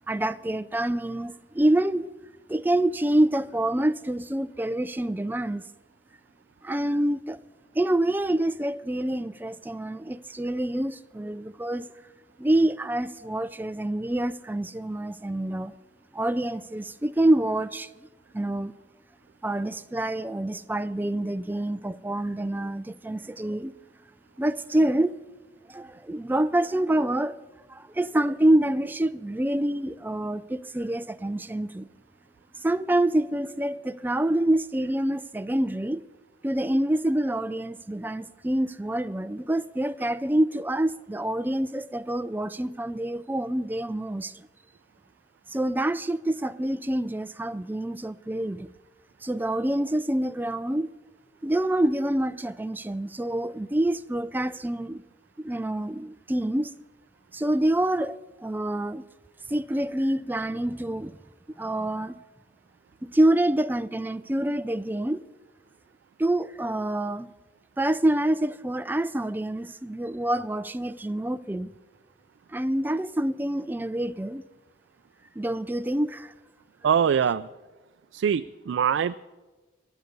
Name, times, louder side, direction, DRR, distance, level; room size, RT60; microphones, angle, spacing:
voice 1, 0.1-2.1 2.5-5.6 6.6-7.4 7.7-11.9 12.4-15.7 16.1-17.9 18.3-18.7 19.4-23.7 24.4-25.1 25.7-27.4 27.7-31.9 32.6-36.0 36.4-44.5 45.5-48.7 49.2-50.9 51.4-55.0 55.4-56.7 57.3-59.0 59.5-61.2 61.6-62.2 63.0-65.2 66.2-67.3 67.8-71.7 72.5-74.4 75.4-76.3, right 1 dB, 10° right, 0.4 m, -26 dB
voice 2, 76.8-77.5 78.1-79.2, right 7 dB, 85° right, 0.3 m, -23 dB
23.0 x 8.1 x 5.3 m
head